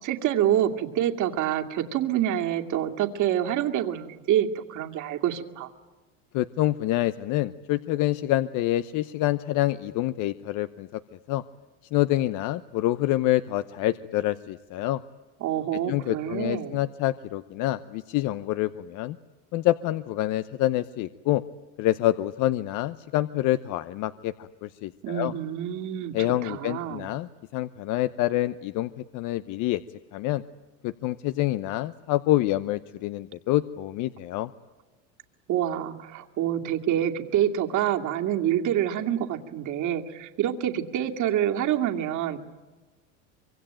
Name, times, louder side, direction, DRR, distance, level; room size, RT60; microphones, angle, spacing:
voice 1, 0.0-5.7 15.4-16.8 25.0-26.1 26.4-27.1 35.5-42.4, right 11 dB, 50° right, 5 dB, 2.5 m, -27 dB
voice 2, 6.3-10.9 11.3-11.4 11.9-15.0 15.9-19.2 19.5-21.4 21.8-25.3 26.1-29.8 30.1-30.4 30.8-34.5, left 15 dB, 55° left, 13 dB, 0.9 m, -27 dB
25.0 x 23.5 x 9.1 m, 1.2 s
supercardioid pair, 110°, 37 cm